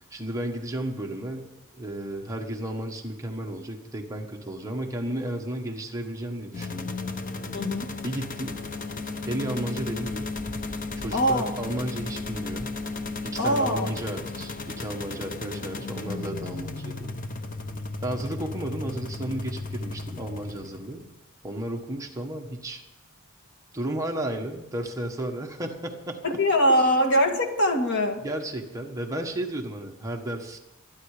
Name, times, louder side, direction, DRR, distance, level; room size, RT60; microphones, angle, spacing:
voice 1, 0.1-1.5 1.7-7.0 8.0-8.6 9.3-10.3 11.0-12.8 13.2-17.1 18.0-21.0 21.4-22.8 23.7-26.2 26.8-27.0 28.2-30.6, right 1 dB, 15° right, 2 dB, 1.4 m, -33 dB
sound 1, 6.5-21.0, left 3 dB, 40° left, 1.0 m, -35 dB
voice 2, 7.5-7.9 11.1-11.5 13.4-13.9 26.2-28.2, equal, 55° left, 4 dB, 2.0 m, -22 dB
24.5 x 10.0 x 5.0 m, 0.92 s
head